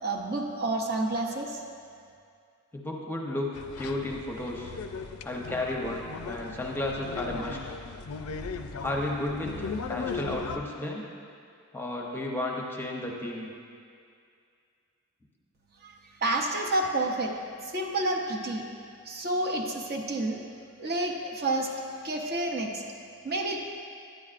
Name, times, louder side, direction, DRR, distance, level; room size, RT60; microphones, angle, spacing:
voice 1, 0.0-1.6 15.8-17.4 17.6-18.7 19.0-20.4 20.8-22.8 23.2-23.6, right 2 dB, 45° right, 0 dB, 0.7 m, -29 dB
voice 2, 2.7-3.5 3.8-4.7 5.2-7.6 8.8-11.1 11.7-13.5, left 1 dB, 10° left, -2 dB, 0.7 m, -33 dB
sound 1, 3.5-10.6, left 4 dB, 75° left, 0.4 m, -38 dB
9.8 x 9.5 x 2.5 m, 2.3 s
head